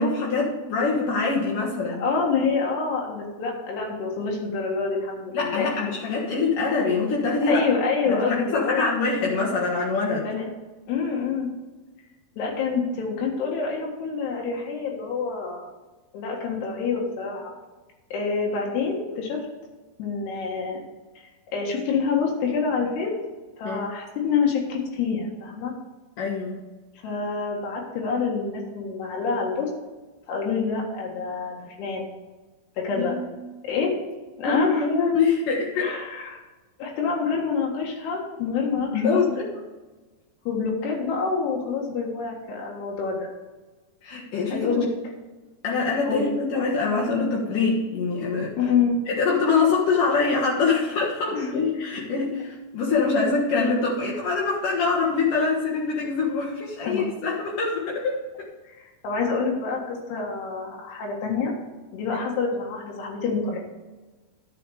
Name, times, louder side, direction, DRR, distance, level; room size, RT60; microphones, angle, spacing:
voice 1, 0.0-2.0 5.3-7.6 8.1-10.3 23.6-23.8 26.2-26.6 33.0-33.2 34.4-35.9 38.9-39.3 44.0-44.8 45.6-48.5 49.1-58.5, left 4 dB, 60° left, -4 dB, 2.8 m, -24 dB
voice 2, 2.0-5.7 7.5-8.9 10.2-10.5 10.9-11.5 12.4-15.7 16.1-17.5 18.1-19.5 20.0-20.8 21.5-23.1 23.6-25.7 27.0-29.7 30.3-32.1 32.8-33.2 33.6-34.0 34.4-34.8 35.8-36.4 36.8-39.5 40.5-43.2 44.5-44.9 46.1-46.3 48.6-49.0 51.4-51.5 56.8-57.0 58.7-61.5 61.9-63.6, left 5 dB, 90° left, -2 dB, 3.8 m, -27 dB
12.0 x 7.0 x 4.8 m, 1.2 s
omnidirectional pair, 4.6 m